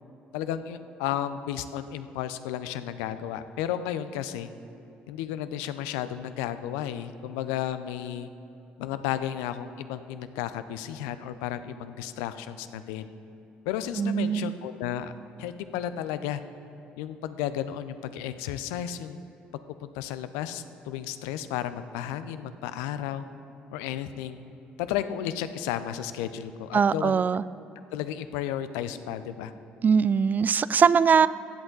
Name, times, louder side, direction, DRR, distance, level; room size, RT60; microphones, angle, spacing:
voice 1, 0.3-4.5 5.1-8.3 8.8-13.1 13.7-15.1 15.4-16.4 17.0-19.2 19.8-23.2 23.7-24.4 24.8-27.1 27.9-29.5, left 10 dB, 80° left, 12 dB, 0.5 m, -33 dB
voice 2, 14.0-14.5 26.7-27.4 29.8-31.3, right 6 dB, 40° right, 18 dB, 0.3 m, -21 dB
15.5 x 8.0 x 3.9 m, 2.8 s
hypercardioid pair, 55°, 5 cm